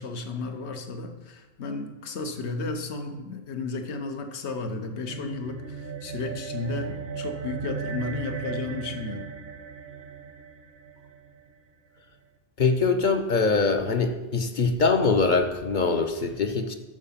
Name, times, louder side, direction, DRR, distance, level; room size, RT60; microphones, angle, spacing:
voice 1, 0.0-9.3, left 3 dB, 65° left, 5 dB, 1.2 m, -33 dB
sound 1, 4.8-11.5, right 6 dB, 60° right, 0.9 m, -37 dB
voice 2, 12.6-16.7, left 4 dB, 45° left, 6 dB, 0.9 m, -23 dB
13.0 x 4.8 x 5.7 m, 1.1 s
omnidirectional pair, 1.2 m